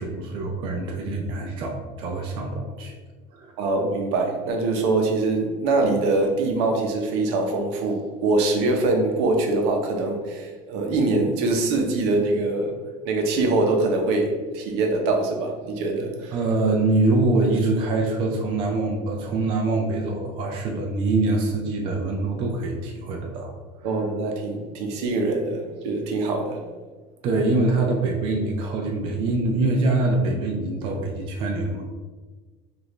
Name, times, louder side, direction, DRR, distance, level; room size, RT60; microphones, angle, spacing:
voice 1, 0.0-2.9 3.3-3.6 16.3-23.5 23.8-23.9 27.2-31.8, right 2 dB, 35° right, 0 dB, 0.5 m, -24 dB
voice 2, 3.6-12.7 13.0-16.4 23.8-26.6, right 2 dB, 75° right, 2 dB, 0.8 m, -23 dB
4.8 x 2.5 x 3.1 m, 1.3 s
cardioid pair, 165°, 15 cm